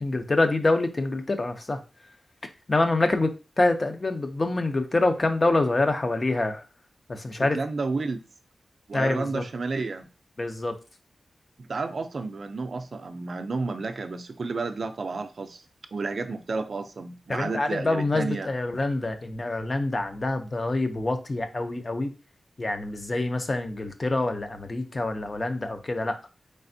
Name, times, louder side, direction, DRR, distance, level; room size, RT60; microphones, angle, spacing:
voice 1, 0.0-1.8 2.7-3.3 3.6-6.6 7.1-7.6 8.9-9.4 10.4-10.7 17.3-22.1 22.6-26.1, left 2 dB, 35° left, 7 dB, 0.5 m, -26 dB
voice 2, 7.4-8.2 8.9-10.0 11.7-15.6 15.9-18.5, right 3 dB, 55° right, 7 dB, 0.4 m, -31 dB
4.1 x 3.3 x 2.6 m, 0.32 s
wide cardioid pair, 120°, 0 cm